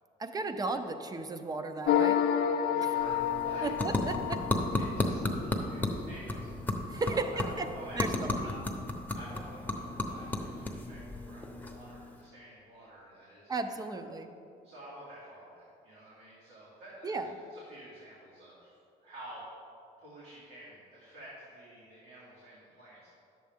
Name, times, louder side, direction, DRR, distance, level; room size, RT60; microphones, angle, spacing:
voice 1, 0.2-2.2 2.8-2.9 3.6-4.4 6.9-7.7 8.0-8.4 13.5-14.3 17.0-17.3, right 3 dB, 20° right, 8 dB, 0.6 m, -35 dB
sound 1, 1.9-5.2, left 9 dB, 60° left, 0.5 m, -29 dB
voice 2, 2.7-3.7 4.8-6.5 6.9-8.0 8.4-8.5 9.1-14.0 14.6-18.8 19.0-19.4 20.0-23.1, right 1 dB, 85° right, -8 dB, 2.3 m, -50 dB
sound 2, 2.8-12.3, left 2 dB, 10° left, 0.9 m, -34 dB
10.5 x 7.6 x 3.6 m, 2.5 s
cardioid pair, 110°, 17 cm